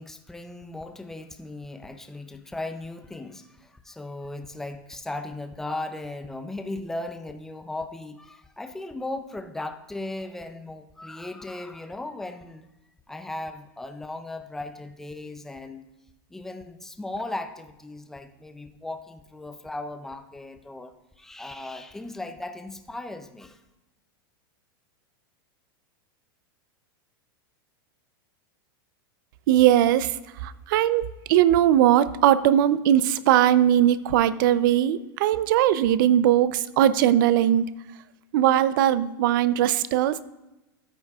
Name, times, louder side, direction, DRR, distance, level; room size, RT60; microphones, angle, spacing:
voice 1, 0.0-12.7 13.1-15.9 16.3-23.6, left 2 dB, 5° left, 7 dB, 0.4 m, -37 dB
voice 2, 29.5-30.2 30.4-37.7 38.3-40.2, right 11 dB, 60° right, 16 dB, 0.5 m, -20 dB
13.5 x 8.1 x 2.3 m, 1.0 s
supercardioid pair, 150°, 12 cm